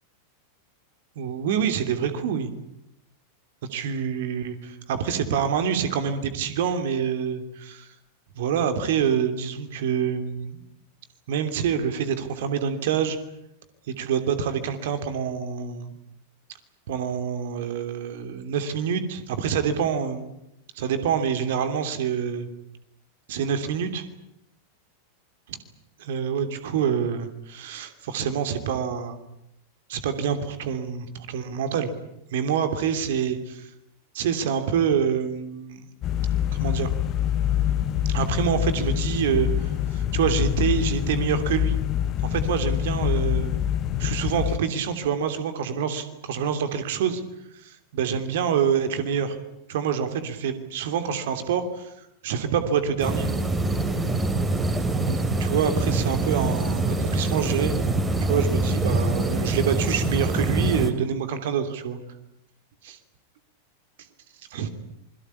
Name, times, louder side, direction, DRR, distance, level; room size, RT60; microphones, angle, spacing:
voice 1, 1.1-2.5 3.7-7.9 8.3-10.6 11.3-13.2 13.9-16.0 16.9-20.3 20.7-22.5 23.3-24.0 25.5-25.6 26.0-29.2 29.9-31.9 32.3-33.7 34.1-35.9 36.5-36.9 38.0-41.8 42.3-43.5 44.0-47.2 47.5-49.4 49.7-53.3 55.1-57.7 58.2-62.0 62.8-63.0 64.5-64.7, right 7 dB, 55° right, 9 dB, 3.0 m, -26 dB
sound 1, 36.0-44.6, left 11 dB, 35° left, 1.7 m, -25 dB
sound 2, 53.0-60.9, right 2 dB, 15° right, 3.5 m, -24 dB
27.0 x 22.5 x 8.5 m, 0.83 s
figure-of-eight pair, 90°, 0 cm